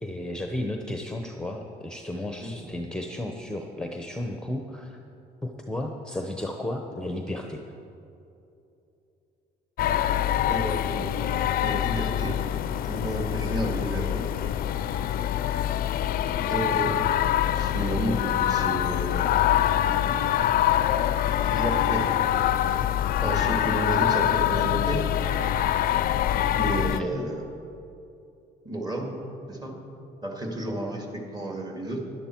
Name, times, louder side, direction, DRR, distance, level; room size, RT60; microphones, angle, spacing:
voice 1, 0.0-5.0 5.4-7.6 26.9-27.2, left 1 dB, 5° left, 3 dB, 0.8 m, -33 dB
sound 1, 9.8-27.0, left 11 dB, 60° left, 0.4 m, -25 dB
voice 2, 10.5-11.1 11.6-12.4 12.8-14.3 16.5-17.2 17.5-19.3 21.4-22.2 23.2-25.0 26.6-27.4 28.6-29.8 30.2-32.0, right 1 dB, 25° right, 1 dB, 2.0 m, -31 dB
12.5 x 10.5 x 4.5 m, 2.7 s
cardioid pair, 110°, 17 cm